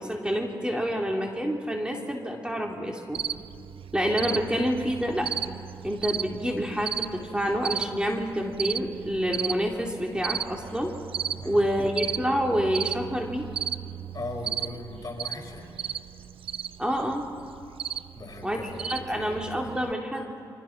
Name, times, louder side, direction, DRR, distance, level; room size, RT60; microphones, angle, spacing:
voice 1, 0.0-3.2 3.9-5.3 5.8-10.9 11.4-13.5 16.8-17.2 18.4-20.3, equal, 10° right, 1 dB, 3.8 m, -28 dB
Cricket, 3.1-19.9, right 9 dB, 75° right, 0.6 m, -35 dB
voice 2, 14.1-15.7 18.1-19.2, left 2 dB, 40° left, 2 dB, 5.4 m, -38 dB
29.5 x 25.0 x 6.2 m, 2.5 s
supercardioid pair, 40°, 9 cm